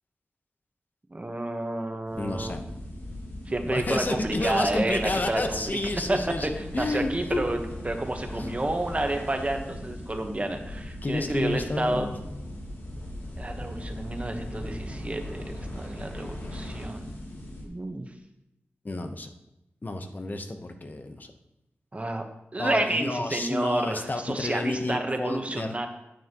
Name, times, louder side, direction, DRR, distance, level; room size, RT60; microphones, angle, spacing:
voice 1, 1.1-2.5 3.5-5.8 6.1-6.5 6.8-12.1 13.4-17.2 17.6-18.1 21.9-22.2 22.5-25.9, right 2 dB, 30° right, 5 dB, 1.2 m, -30 dB
sound 1, 2.1-17.6, left 1 dB, 75° left, 2.9 m, -39 dB
voice 2, 2.2-2.6 3.7-7.4 8.3-8.6 11.0-12.4 18.8-19.3 19.8-21.3 22.6-25.7, left 2 dB, 45° left, 6 dB, 1.0 m, -30 dB
9.6 x 9.0 x 3.1 m, 0.88 s
wide cardioid pair, 70°, 4 cm